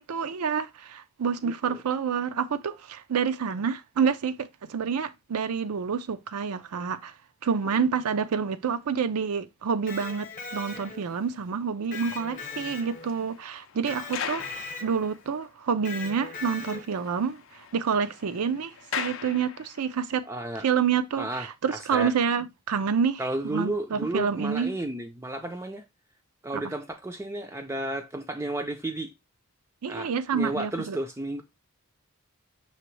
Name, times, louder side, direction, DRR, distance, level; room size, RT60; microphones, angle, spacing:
voice 1, 0.0-7.1 7.4-14.4 14.8-17.4 17.7-20.2 20.6-24.7 26.6-26.7 29.8-31.0, right 6 dB, 90° right, 0.5 m, -28 dB
voice 2, 1.4-1.8 20.3-20.6 21.2-22.1 23.2-25.8 26.4-29.1 29.9-31.4, right 1 dB, 10° right, 0.4 m, -33 dB
Electric guitar, 9.7-11.2 11.9-13.3 13.9-15.1 15.9-17.1, left 4 dB, 40° left, 0.8 m, -39 dB
sound 1, 12.0-15.7 16.0-16.1 16.5-16.6 16.8-20.1 20.8-21.0, left 8 dB, 60° left, 0.5 m, -40 dB
5.8 x 3.0 x 3.1 m
head